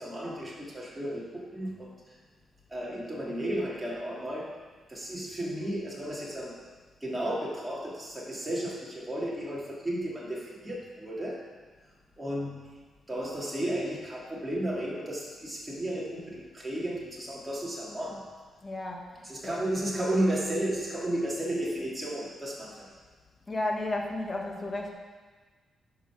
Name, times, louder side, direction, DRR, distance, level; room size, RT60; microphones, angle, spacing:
voice 1, 0.0-2.2 2.7-4.5 4.9-6.6 7.0-11.4 12.2-12.6 13.1-18.2 19.2-22.9, right 1 dB, 10° right, -5 dB, 2.6 m, -33 dB
voice 2, 18.6-19.6 23.5-24.9, left 2 dB, 25° left, 0 dB, 1.6 m, -33 dB
10.0 x 5.6 x 6.1 m, 1.4 s
cardioid pair, 95°, 0 cm